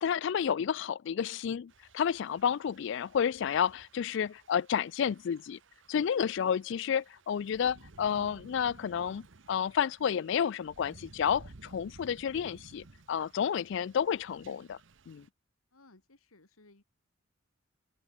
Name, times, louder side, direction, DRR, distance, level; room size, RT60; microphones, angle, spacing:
voice 1, 0.0-5.6 5.9-14.8 15.1-15.3, left 8 dB, 60° left, 0.3 m, -31 dB
Thunder / Rain, 1.7-15.3, right 2 dB, 60° right, 1.0 m, -56 dB
voice 2, 15.7-16.8, left 2 dB, 90° left, 2.7 m, -60 dB
open air
head